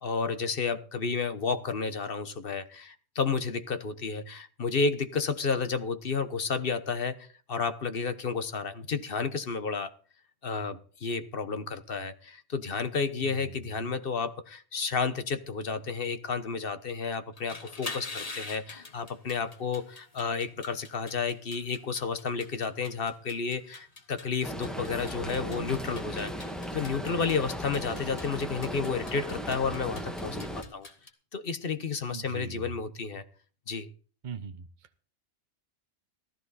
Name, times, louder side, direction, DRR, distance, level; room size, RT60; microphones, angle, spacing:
voice 1, 0.0-9.9 10.4-30.9 31.3-33.2 33.7-33.9, left 5 dB, 55° left, 1.2 m, -31 dB
sound 1, 17.3-31.1, left 3 dB, 35° left, 1.4 m, -45 dB
sound 2, 24.4-30.6, equal, ahead, 1.6 m, -37 dB
voice 2, 32.1-32.6 34.2-34.6, right 6 dB, 45° right, 0.9 m, -39 dB
14.0 x 13.5 x 4.1 m
omnidirectional pair, 1.2 m